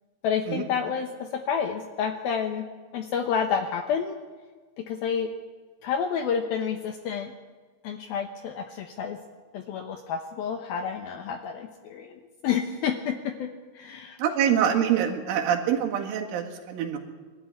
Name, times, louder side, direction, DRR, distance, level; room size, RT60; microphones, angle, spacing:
voice 1, 0.2-2.7 2.9-4.2 4.8-5.3 5.8-7.3 7.8-9.2 9.5-13.5 13.7-14.2, left 7 dB, 75° left, 5 dB, 2.2 m, -29 dB
voice 2, 14.2-17.0, right 9 dB, 85° right, 2 dB, 4.4 m, -25 dB
22.0 x 13.0 x 9.8 m, 1.4 s
omnidirectional pair, 5.4 m